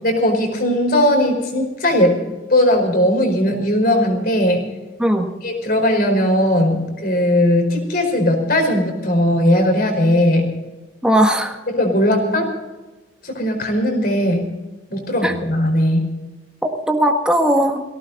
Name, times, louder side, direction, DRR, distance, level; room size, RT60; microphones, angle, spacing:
voice 1, 0.0-2.1 2.5-4.6 5.4-10.5 11.7-12.5 13.2-14.5 14.9-16.1, left 1 dB, 50° left, 3 dB, 4.8 m, -18 dB
voice 2, 5.0-5.3 11.0-11.6 15.2-15.3 16.6-17.8, right 1 dB, 5° right, 3 dB, 1.5 m, -18 dB
18.5 x 17.5 x 4.1 m, 1.1 s
head